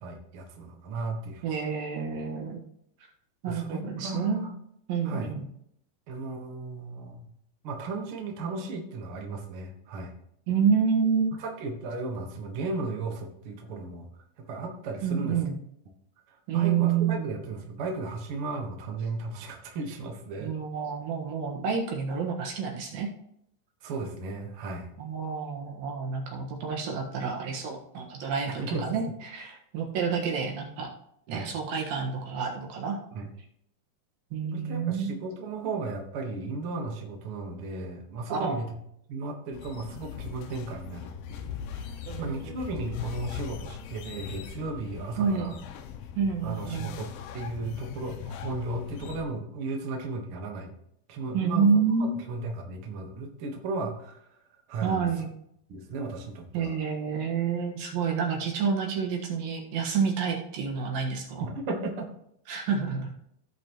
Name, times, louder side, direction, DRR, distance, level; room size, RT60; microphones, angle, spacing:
voice 1, 0.0-1.4 3.5-4.5 5.0-5.3 6.1-7.3 7.6-10.1 11.4-14.1 14.4-15.4 16.3-20.5 23.8-24.9 28.5-29.1 31.3-31.5 33.1-33.3 34.5-38.8 39.1-45.6 46.4-50.7 51.1-51.7 52.0-54.3 54.7-55.1 55.7-56.7 61.4-62.1, right 3 dB, 55° right, 1 dB, 1.6 m, -35 dB
voice 2, 1.4-2.6 3.4-4.5 4.9-5.4 10.5-11.4 15.0-15.6 16.5-17.4 20.4-23.1 25.0-30.9 31.3-33.0 34.3-35.1 38.3-38.6 42.1-42.5 45.2-45.5 46.2-46.9 51.3-52.2 54.8-55.3 56.5-61.4 62.5-63.1, right 6 dB, 75° right, 0 dB, 3.2 m, -28 dB
sound 1, 39.5-49.2, left 8 dB, 80° left, 2.5 m, -40 dB
16.5 x 5.5 x 3.0 m, 0.73 s
omnidirectional pair, 4.2 m